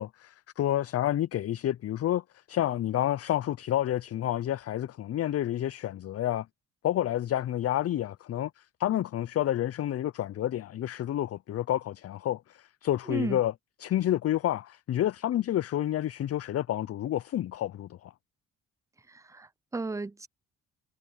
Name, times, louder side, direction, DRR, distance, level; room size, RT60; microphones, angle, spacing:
voice 1, 0.0-6.5 6.8-13.5 13.8-18.1, left 12 dB, 50° left, 0.5 m, -29 dB
voice 2, 13.1-13.4 19.1-20.3, right 3 dB, 10° right, 0.6 m, -34 dB
cardioid pair, 75°, 30 cm